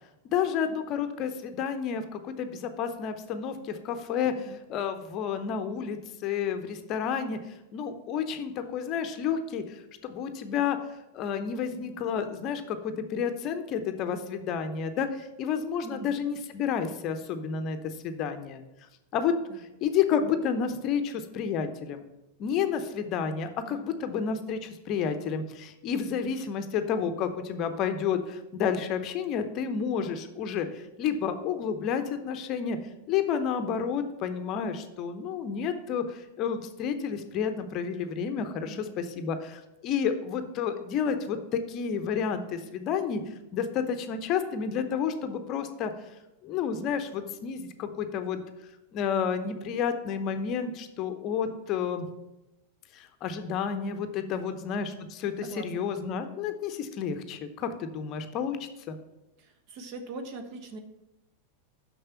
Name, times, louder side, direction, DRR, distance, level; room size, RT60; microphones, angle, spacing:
voice 1, 0.3-7.4 7.7-10.8 11.1-18.6 19.1-22.0 22.4-32.8 33.1-43.2 43.5-45.9 46.4-48.4 48.9-52.1 52.9-58.6 58.9-59.0, left 7 dB, 35° left, 8 dB, 0.7 m, -30 dB
voice 2, 4.3-4.6 15.8-16.2 19.5-19.6 23.7-23.8 38.7-38.9 54.2-54.6 55.4-55.9 59.4-60.8, right 4 dB, 40° right, 6 dB, 1.1 m, -42 dB
6.6 x 6.1 x 5.7 m, 0.94 s
figure-of-eight pair, 90°, 0 cm